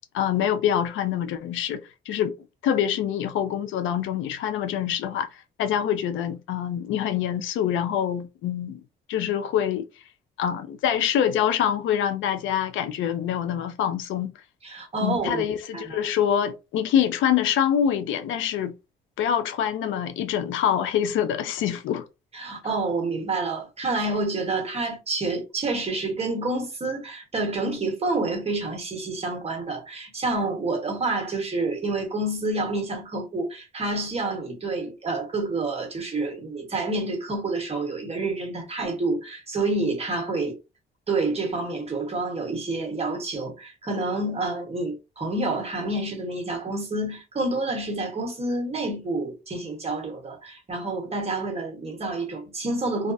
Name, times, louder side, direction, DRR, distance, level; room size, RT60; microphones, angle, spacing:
voice 1, 0.1-2.3 2.6-8.8 9.1-9.9 10.4-14.3 15.0-18.7 19.2-22.1, left 9 dB, 80° left, 0.4 m, -25 dB
voice 2, 14.6-15.4 15.7-16.0 22.3-40.6 41.1-53.1, right 2 dB, 30° right, 1.2 m, -28 dB
2.4 x 2.3 x 2.5 m
cardioid pair, 90°, 20 cm